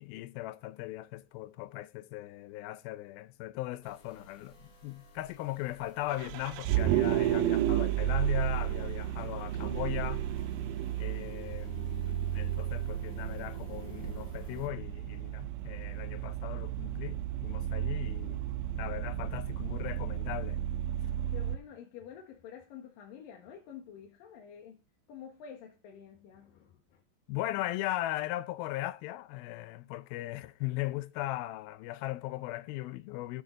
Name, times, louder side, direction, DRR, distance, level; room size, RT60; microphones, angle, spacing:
voice 1, 0.0-10.3 11.0-18.4 18.8-20.6 27.3-33.4, left 16 dB, 90° left, 2.5 m, -38 dB
sound 1, 3.8-14.7, right 1 dB, 35° left, 3.2 m, -54 dB
Vehicle, 6.1-21.6, right 12 dB, 80° right, 2.1 m, -32 dB
voice 2, 21.0-24.8 25.1-27.0, left 8 dB, 75° left, 3.0 m, -49 dB
12.5 x 5.6 x 3.9 m
omnidirectional pair, 4.2 m